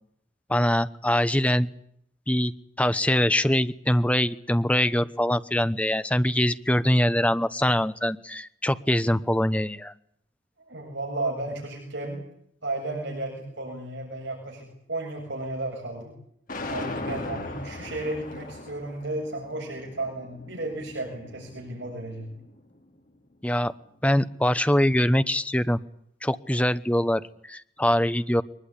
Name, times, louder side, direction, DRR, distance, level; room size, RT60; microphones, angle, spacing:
voice 1, 0.5-1.7 2.3-2.5 2.8-9.9 23.4-23.7 24.0-25.8 26.2-28.4, left 1 dB, 5° left, 12 dB, 0.9 m, -23 dB
voice 2, 10.7-12.2 12.6-16.1 16.7-22.3, right 2 dB, 65° right, 0 dB, 7.6 m, -33 dB
sound 1, 16.5-22.6, left 2 dB, 45° left, 4.0 m, -39 dB
23.0 x 20.5 x 10.0 m, 0.69 s
head